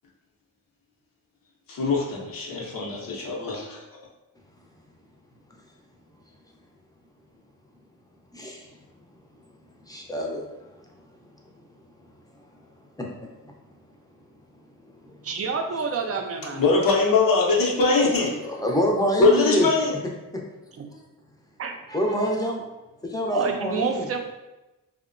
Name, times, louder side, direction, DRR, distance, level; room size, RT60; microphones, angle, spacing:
voice 1, 1.7-3.8 16.5-18.5 19.2-20.0, left 3 dB, 75° left, -3 dB, 0.7 m, -22 dB
voice 2, 8.3-8.7 9.9-10.7 13.0-13.1 15.0-15.5 18.4-19.7 20.3-20.4 21.9-22.6 23.0-24.1, equal, 10° left, -1 dB, 0.5 m, -27 dB
voice 3, 15.2-16.6 20.8-20.9 21.6-21.7 23.3-24.2, right 5 dB, 45° right, 4 dB, 0.4 m, -28 dB
2.7 x 2.1 x 2.5 m, 1.0 s
cardioid pair, 65°, 34 cm